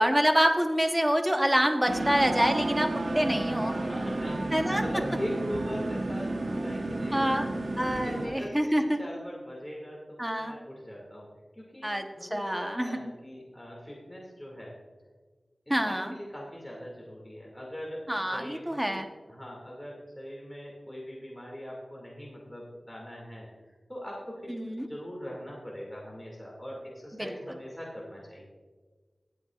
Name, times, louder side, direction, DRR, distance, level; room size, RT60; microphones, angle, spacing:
voice 1, 0.0-3.8 4.5-4.8 7.1-7.5 7.8-9.0 10.2-10.5 11.8-13.0 15.7-16.1 18.1-19.1 24.5-24.9 27.1-27.3, equal, 10° right, 5 dB, 1.0 m, -26 dB
sound 1, 1.9-8.3, right 2 dB, 60° right, 1.0 m, -31 dB
voice 2, 3.7-7.7 7.9-11.3 11.5-14.7 15.7-18.0 18.3-19.0 19.3-23.5 23.9-24.5 24.9-28.4, equal, 10° left, -4 dB, 2.2 m, -41 dB
18.5 x 7.9 x 2.4 m, 1.4 s
wide cardioid pair, 75°, 0 cm